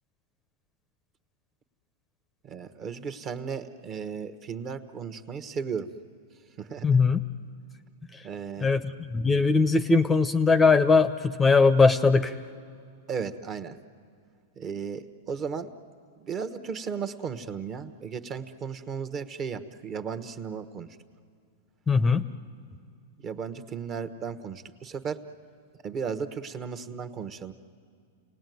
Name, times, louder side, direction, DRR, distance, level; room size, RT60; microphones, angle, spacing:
voice 1, 2.4-5.9 6.6-6.9 8.2-8.7 13.1-13.8 14.6-15.7 16.2-20.9 23.2-25.2 25.8-27.5, right 6 dB, 30° right, 10 dB, 1.1 m, -35 dB
voice 2, 6.8-7.2 8.6-12.3 21.9-22.2, left 4 dB, 15° left, 13 dB, 0.7 m, -20 dB
30.0 x 18.5 x 9.3 m, 2.3 s
hypercardioid pair, 130°, 0 cm